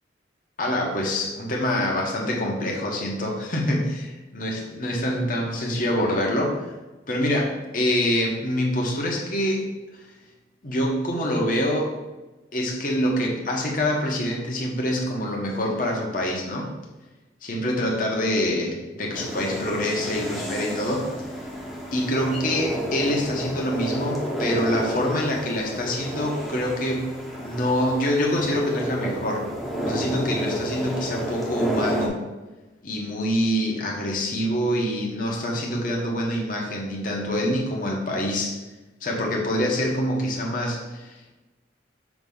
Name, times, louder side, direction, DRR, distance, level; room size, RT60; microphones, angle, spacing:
voice 1, 0.6-6.7 7.1-10.0 10.6-12.0 12.5-16.7 17.4-21.1 21.9-29.5 29.9-32.2 32.8-38.6 39.0-41.4, left 1 dB, 45° left, -1 dB, 1.1 m, -25 dB
sound 1, 19.1-32.1, right 1 dB, ahead, 0.9 m, -31 dB
6.0 x 2.9 x 5.4 m, 1.1 s
head